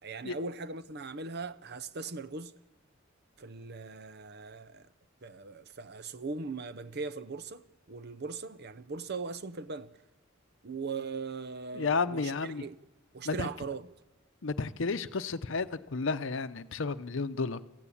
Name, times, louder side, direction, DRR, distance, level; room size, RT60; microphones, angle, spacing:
voice 1, 0.0-2.6 3.4-4.9 5.2-10.0 10.6-12.8 13.1-13.9, right 4 dB, 50° right, 0.8 m, -39 dB
voice 2, 11.7-12.6 13.2-13.5 14.4-17.7, left 4 dB, 65° left, 0.7 m, -32 dB
27.0 x 15.0 x 8.5 m
head